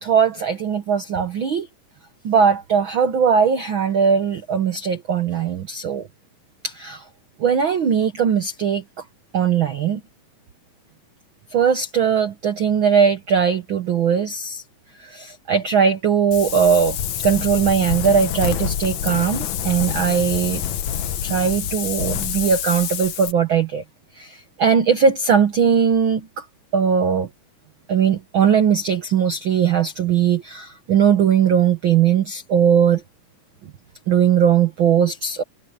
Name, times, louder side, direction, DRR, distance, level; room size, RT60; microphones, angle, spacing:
voice 1, 0.0-1.7 2.2-6.1 6.6-7.0 7.4-8.8 9.3-10.0 11.5-14.6 15.0-17.0 17.2-20.6 21.2-23.8 24.2-26.4 26.7-27.3 27.9-33.0 34.1-35.4, right 7 dB, 90° right, 1.1 m, -19 dB
Wind, 16.3-23.3, left 10 dB, 65° left, 2.3 m, -27 dB
omnidirectional pair, 3.9 m